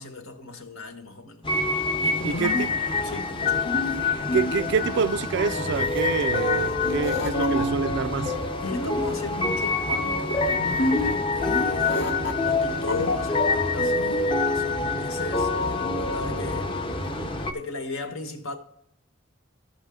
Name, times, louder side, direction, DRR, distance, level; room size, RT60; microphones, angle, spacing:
voice 1, 0.0-1.5 1.8-2.8 3.0-3.7 8.6-17.2 17.5-18.6, left 3 dB, 80° left, 1.4 m, -37 dB
sound 1, 1.4-17.5, left 3 dB, 25° left, 0.6 m, -26 dB
Computer Noises Creep, 2.0-14.5, left 1 dB, 65° left, 1.0 m, -31 dB
voice 2, 2.2-2.7 4.3-8.4, right 6 dB, 55° right, 0.3 m, -27 dB
14.5 x 5.6 x 3.6 m
head